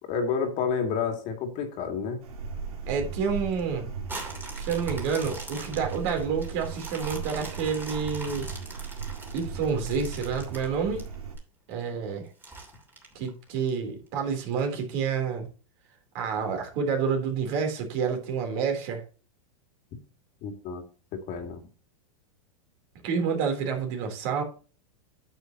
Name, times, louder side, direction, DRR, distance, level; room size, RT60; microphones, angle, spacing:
voice 1, 0.0-2.2 20.4-20.8 21.1-21.6, left 6 dB, 40° left, 4 dB, 2.4 m, -30 dB
sound 1, 2.2-11.4, right 5 dB, 90° right, 3.3 m, -37 dB
voice 2, 2.9-3.9 4.5-8.5 9.3-11.1 11.7-12.3 13.1-15.5 16.1-19.0 23.0-24.4, right 6 dB, 50° right, 4 dB, 3.3 m, -29 dB
sound 2, 4.1-11.4 11.9-12.0 12.4-13.7 14.2-14.3, right 2 dB, 10° right, 2.8 m, -42 dB
9.2 x 7.9 x 2.9 m, 0.37 s
supercardioid pair, 135°, 19 cm